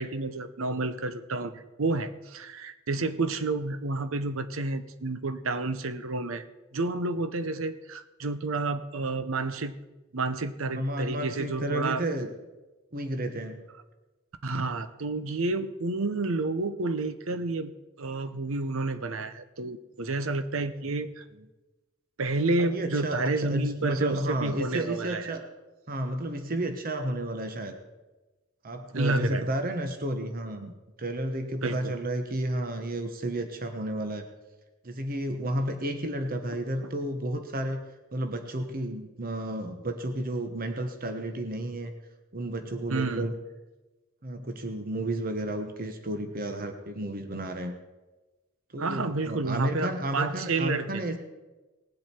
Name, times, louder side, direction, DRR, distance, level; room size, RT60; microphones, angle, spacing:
voice 1, 0.0-6.4 6.7-9.7 10.1-12.0 14.4-17.7 18.0-21.2 22.2-25.3 28.9-29.5 31.6-32.0 36.8-36.9 42.9-43.3 48.8-51.0, right 3 dB, 70° right, 11 dB, 0.8 m, -30 dB
voice 2, 10.7-12.3 12.9-13.6 22.6-25.5 25.9-27.8 28.6-34.3 34.8-37.8 38.1-41.9 42.3-43.4 44.2-47.7 48.7-51.2, right 1 dB, 45° right, 6 dB, 1.1 m, -32 dB
19.5 x 7.6 x 4.4 m, 1.1 s
head